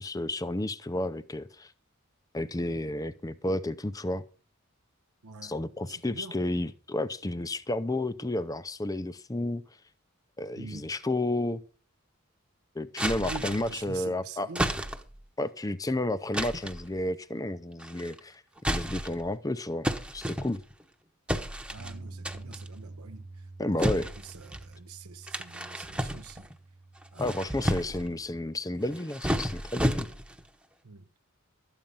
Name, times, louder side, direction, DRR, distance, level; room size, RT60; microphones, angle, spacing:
voice 1, 0.0-1.7 2.3-4.2 5.4-9.6 10.4-11.6 12.7-14.5 15.4-19.9 20.1-20.6 23.6-24.1 27.2-30.1, left 1 dB, 15° left, 0.6 m, -31 dB
voice 2, 5.2-5.5 5.8-6.4 10.6-10.9 13.2-14.7 21.7-23.5 24.2-26.5 27.1-28.2 30.8-31.1, right 4 dB, 90° right, 1.0 m, -45 dB
sound 1, 13.0-13.8 14.6-15.2 16.3-16.8 17.8-18.2 18.6-19.3 19.8-20.8 21.3-21.9 22.3-22.7 23.8-24.7 25.3-26.5 27.0-28.1 28.8-30.4, equal, 5° right, 0.9 m, -32 dB
Bass guitar, 21.8-28.0, right 2 dB, 50° right, 0.7 m, -47 dB
13.0 x 8.9 x 5.5 m
head